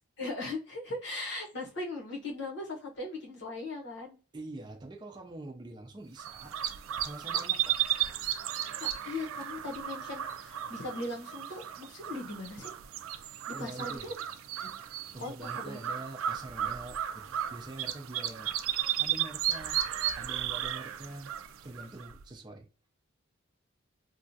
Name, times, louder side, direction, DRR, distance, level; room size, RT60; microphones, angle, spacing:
voice 1, 0.2-4.2 7.3-7.5 8.8-12.7 13.5-14.1 14.6-14.7 15.2-15.8, left 2 dB, 60° left, 1.0 m, -39 dB
voice 2, 4.3-6.6 7.0-7.8 13.5-14.1 15.1-18.6 19.0-19.8 20.1-21.3 21.6-22.7, right 2 dB, 20° right, 0.4 m, -45 dB
sound 1, 6.2-22.2, right 11 dB, 90° right, 0.3 m, -34 dB
2.9 x 2.3 x 2.6 m
head